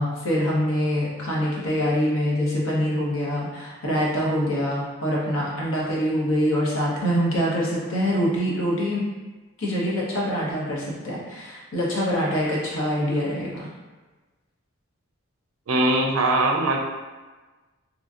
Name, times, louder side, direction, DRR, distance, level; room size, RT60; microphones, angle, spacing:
voice 1, 0.0-9.1 9.6-13.7, equal, 75° left, -5 dB, 0.9 m, -24 dB
voice 2, 15.7-16.8, right 2 dB, 80° right, 2 dB, 0.4 m, -21 dB
2.9 x 2.6 x 2.4 m, 1.2 s
head